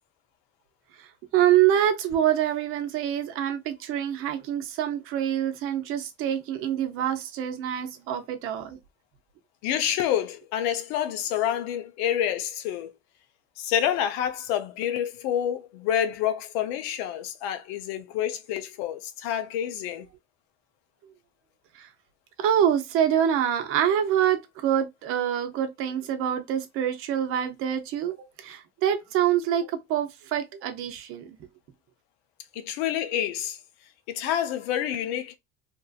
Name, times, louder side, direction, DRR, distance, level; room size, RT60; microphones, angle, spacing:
voice 1, 1.0-8.8 21.7-21.9 22.4-31.3, right 10 dB, 45° right, 0.6 m, -26 dB
voice 2, 9.6-12.9 13.6-20.1 32.5-33.6 34.1-35.4, left 10 dB, 85° left, 0.7 m, -28 dB
2.9 x 2.6 x 2.3 m
cardioid pair, 170°, 30 cm